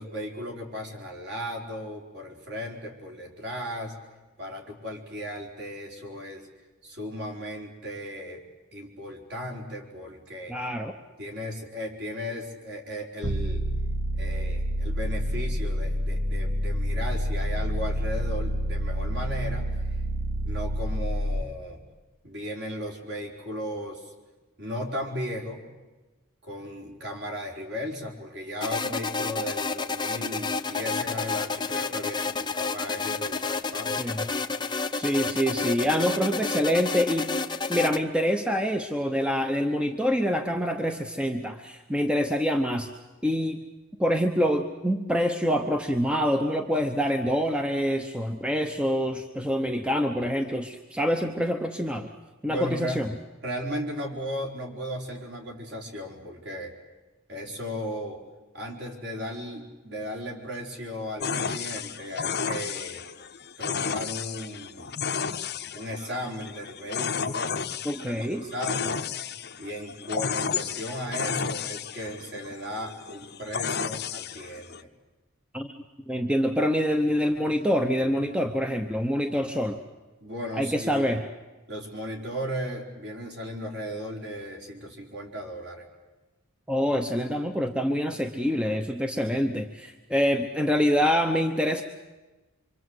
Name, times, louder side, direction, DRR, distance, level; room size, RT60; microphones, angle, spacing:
voice 1, 0.0-4.0 4.4-6.5 6.8-8.4 8.7-10.6 11.2-13.6 14.2-19.7 20.4-21.8 22.2-24.1 24.6-25.7 26.4-34.2 52.5-53.1 53.4-56.7 57.3-58.2 58.5-63.0 63.6-65.0 65.7-67.6 68.1-69.1 69.6-74.9 80.2-81.1 81.7-85.9, equal, 50° right, 1 dB, 4.4 m, -36 dB
voice 2, 10.5-10.9 34.0-34.3 34.9-37.3 37.7-42.9 43.2-43.6 44.0-52.1 52.4-53.1 67.8-68.4 75.5-75.7 76.1-79.8 80.6-81.2 86.7-91.8, equal, 5° right, 6 dB, 0.9 m, -26 dB
sound 1, 13.2-21.4, equal, 70° right, 2.6 m, -28 dB
sound 2, 28.6-38.0, left 4 dB, 20° left, 0.8 m, -30 dB
sound 3, 61.2-74.8, left 6 dB, 50° left, 0.9 m, -32 dB
25.5 x 25.0 x 8.0 m, 1.2 s
head